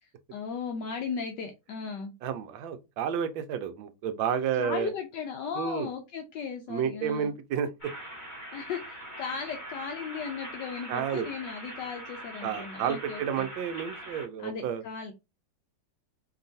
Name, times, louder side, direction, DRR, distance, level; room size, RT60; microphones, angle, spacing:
voice 1, 0.0-2.1 4.6-7.3 8.5-13.5 14.4-15.1, left 6 dB, 70° left, 1.2 m, -36 dB
voice 2, 2.2-4.9 5.5-5.9 6.7-7.7 10.9-11.3 12.4-14.8, right 8 dB, 75° right, 1.3 m, -31 dB
sound 1, 7.8-14.3, right 1 dB, 25° left, 1.6 m, -42 dB
4.6 x 2.9 x 2.6 m
omnidirectional pair, 2.2 m